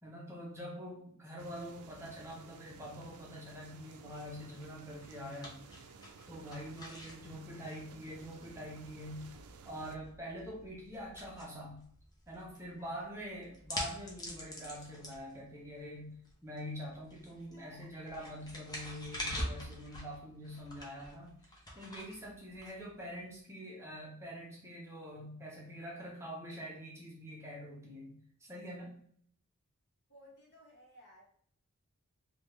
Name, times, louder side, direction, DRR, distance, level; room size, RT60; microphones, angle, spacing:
voice 1, 0.0-5.5 6.3-9.4 9.7-11.8 12.3-28.9, equal, 10° right, -3 dB, 0.7 m, -45 dB
sound 1, 1.4-10.0, right 5 dB, 75° right, 0.4 m, -55 dB
sound 2, 4.1-23.3, equal, 20° left, 0.7 m, -47 dB
voice 2, 17.4-18.1 30.1-31.3, left 1 dB, 55° left, -2 dB, 1.1 m, -59 dB
3.6 x 2.3 x 3.1 m, 0.62 s
head